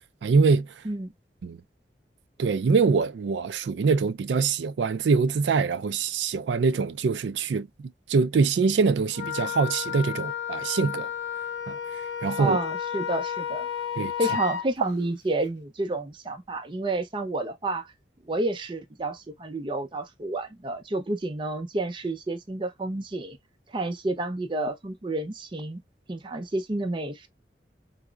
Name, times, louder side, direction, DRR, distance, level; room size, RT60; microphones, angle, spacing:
voice 1, 0.2-0.7 1.4-1.6 2.4-7.7 8.1-11.1 11.7-11.8 12.2-12.6 14.0-14.1, right 4 dB, 80° right, 0.4 m, -24 dB
Wind instrument woodwind instrument, 9.1-14.6, left 8 dB, 85° left, 0.5 m, -32 dB
voice 2, 12.4-13.7 14.2-17.8 18.3-23.4 23.7-25.8 26.1-27.3, right 2 dB, 25° right, 0.5 m, -30 dB
4.5 x 2.0 x 2.3 m
head